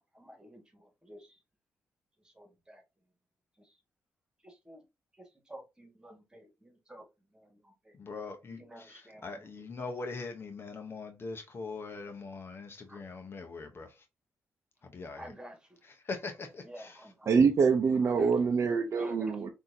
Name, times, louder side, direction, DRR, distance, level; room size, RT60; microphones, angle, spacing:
voice 1, 0.1-1.4 2.4-2.8 4.4-4.8 5.5-7.0 7.3-7.9 8.5-9.3 12.9-13.0 15.1-15.6 16.6-17.3 18.0-18.3 19.0-19.3, right 1 dB, 15° right, 1.7 m, -50 dB
voice 2, 7.9-14.0 14.8-15.3 15.8-17.1, left 3 dB, 45° left, 0.9 m, -42 dB
voice 3, 17.3-19.5, right 5 dB, 55° right, 0.6 m, -25 dB
5.9 x 2.8 x 2.7 m
cardioid pair, 75°, 6 cm